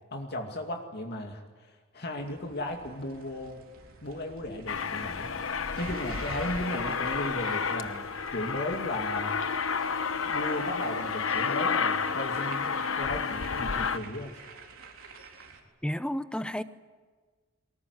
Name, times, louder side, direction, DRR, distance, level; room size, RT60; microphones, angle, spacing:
voice 1, 0.1-3.7 4.0-5.3 5.8-9.4 10.3-14.4, left 1 dB, 55° left, 2 dB, 2.5 m, -36 dB
sound 1, 2.2-15.6, right 4 dB, 80° right, 4.0 m, -49 dB
Aircraft, 4.7-14.0, left 5 dB, 70° left, 1.1 m, -31 dB
voice 2, 15.8-16.6, equal, 5° left, 12 dB, 0.8 m, -31 dB
24.0 x 19.5 x 9.8 m, 1.4 s
head